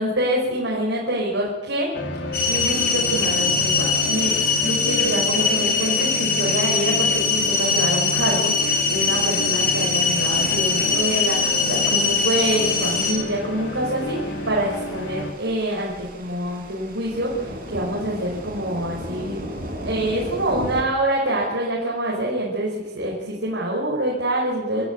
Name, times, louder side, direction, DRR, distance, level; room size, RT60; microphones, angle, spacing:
voice 1, 0.0-4.3 4.6-24.8, right 1 dB, 85° right, -2 dB, 5.5 m, -26 dB
sound 1, 1.9-15.3, left 1 dB, 75° left, 2.8 m, -31 dB
sound 2, 2.3-13.1, left 5 dB, 55° left, 6.0 m, -22 dB
sound 3, 10.1-20.8, equal, 50° right, 6.7 m, -37 dB
28.0 x 13.0 x 9.4 m, 1.1 s
head